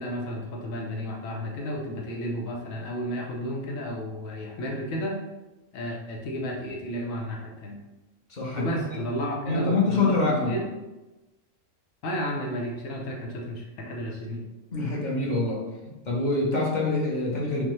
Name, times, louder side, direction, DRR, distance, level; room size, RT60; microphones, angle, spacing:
voice 1, 0.0-5.2 5.7-7.8 8.5-10.6 12.0-14.4, equal, 90° left, -1 dB, 1.1 m, -32 dB
voice 2, 8.3-9.0 9.4-10.6 14.7-15.6 16.0-17.7, left 2 dB, 40° left, -3 dB, 0.9 m, -25 dB
5.2 x 2.2 x 3.0 m, 1.1 s
omnidirectional pair, 1.3 m